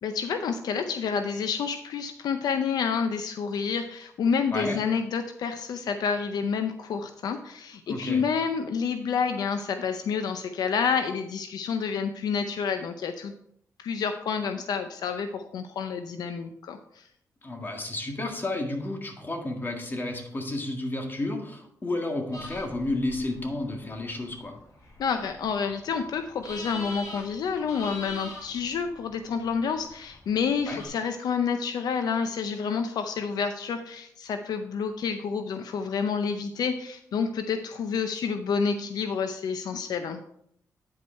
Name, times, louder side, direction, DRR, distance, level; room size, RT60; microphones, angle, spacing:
voice 1, 0.0-13.3 13.8-17.1 25.0-40.2, left 6 dB, 80° left, 8 dB, 0.6 m, -29 dB
voice 2, 7.9-8.2 17.4-24.5 30.7-30.8, left 2 dB, 30° left, 3 dB, 1.9 m, -31 dB
sound 1, 22.3-30.9, left 1 dB, 50° left, 3.5 m, -44 dB
9.4 x 5.4 x 4.5 m, 0.71 s
cardioid pair, 75°, 7 cm